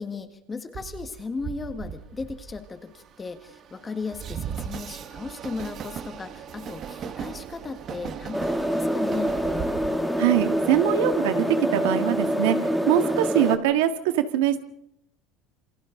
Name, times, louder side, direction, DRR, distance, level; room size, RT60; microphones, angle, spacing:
voice 1, 0.0-9.4, left 4 dB, 15° left, 8 dB, 1.6 m, -36 dB
Train, 0.7-11.2, right 8 dB, 30° right, 1.2 m, -38 dB
sound 1, 8.3-13.6, equal, ahead, 1.6 m, -25 dB
voice 2, 10.2-12.6 12.9-14.6, right 11 dB, 90° right, 8 dB, 1.9 m, -23 dB
28.0 x 26.5 x 3.9 m, 0.76 s
cardioid pair, 170°, 0 cm